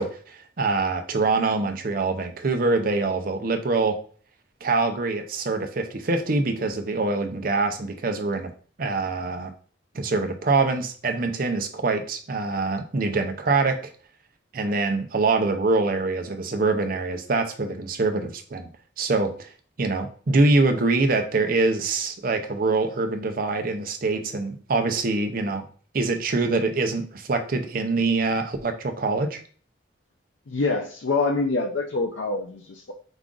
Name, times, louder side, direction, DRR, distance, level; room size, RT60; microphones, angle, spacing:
voice 1, 0.0-4.0 4.6-8.5 8.8-9.5 9.9-13.8 14.5-18.7 19.0-19.5 19.8-25.6 25.9-29.4, right 3 dB, 50° right, 7 dB, 0.6 m, -24 dB
voice 2, 30.5-32.9, left 3 dB, 90° left, 2 dB, 0.5 m, -25 dB
4.9 x 2.4 x 3.7 m, 0.43 s
head